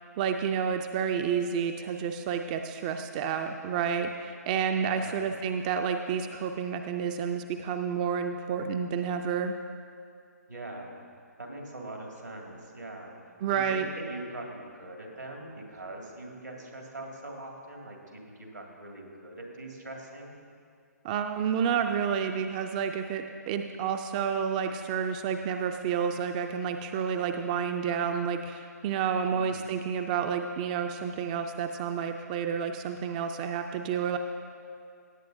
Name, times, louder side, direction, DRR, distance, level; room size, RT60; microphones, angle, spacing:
voice 1, 0.2-9.5 13.4-13.9 21.0-34.2, right 7 dB, 25° right, 6 dB, 0.4 m, -30 dB
voice 2, 4.9-5.3 10.5-10.9 11.4-13.2 13.5-20.4 29.3-29.8, right 1 dB, 90° right, 0 dB, 2.1 m, -42 dB
17.5 x 8.4 x 2.6 m, 2.3 s
figure-of-eight pair, 130°, 9 cm